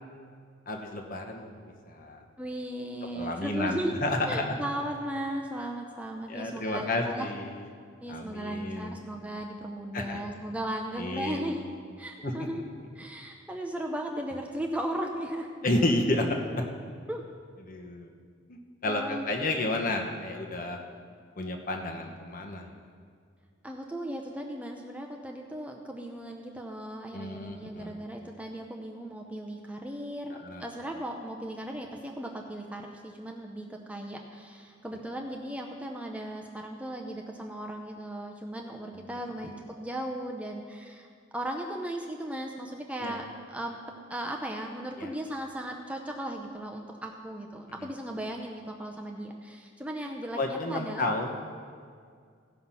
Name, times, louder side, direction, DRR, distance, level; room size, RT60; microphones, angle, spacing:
voice 1, 0.7-2.2 3.1-4.4 6.3-7.6 8.1-9.0 9.9-10.2 11.0-11.5 12.2-12.3 15.6-16.3 17.7-18.1 18.8-20.8 21.4-22.7 27.1-28.0 30.4-30.6 43.0-43.2 45.0-45.1 50.4-51.3, left 2 dB, 45° left, 2 dB, 1.1 m, -31 dB
voice 2, 2.4-3.9 4.2-7.3 8.0-11.7 12.0-12.6 12.9-15.5 17.1-17.3 18.8-19.3 23.6-41.1 41.3-43.8 44.1-51.1, right 1 dB, 5° right, 1 dB, 0.6 m, -36 dB
16.0 x 5.7 x 5.7 m, 2.1 s
head